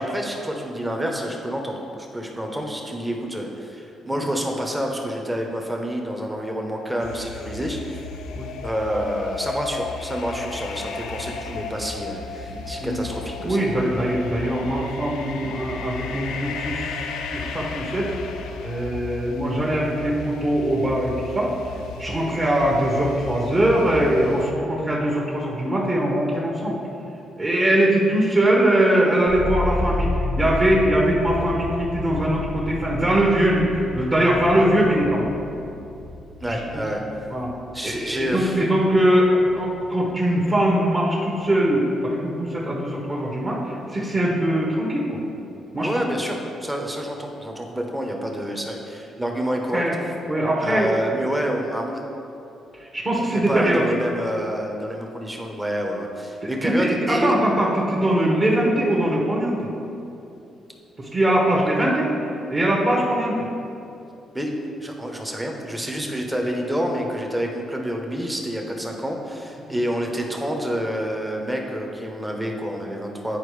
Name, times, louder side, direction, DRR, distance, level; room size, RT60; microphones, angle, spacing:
voice 1, 0.0-8.0 8.6-13.6 36.4-37.0 37.7-38.6 45.8-49.9 50.6-52.0 53.2-57.3 64.3-64.5 64.8-73.4, equal, 10° right, 1 dB, 1.0 m, -28 dB
sound 1, 7.0-24.5, left 5 dB, 90° left, 0.5 m, -35 dB
voice 2, 12.5-13.0 13.4-18.1 18.6-21.5 22.0-26.8 27.4-35.2 36.5-36.6 37.3-37.5 37.8-45.1 45.7-46.0 49.7-49.9 50.3-50.9 52.9-53.8 56.4-59.7 61.0-62.1 62.5-63.4, right 1 dB, 30° right, -5 dB, 1.3 m, -21 dB
sound 2, 29.3-39.3 39.5-40.3, left 2 dB, 65° left, 1.0 m, -31 dB
9.7 x 4.5 x 3.3 m, 2.7 s
cardioid pair, 90°, 0 cm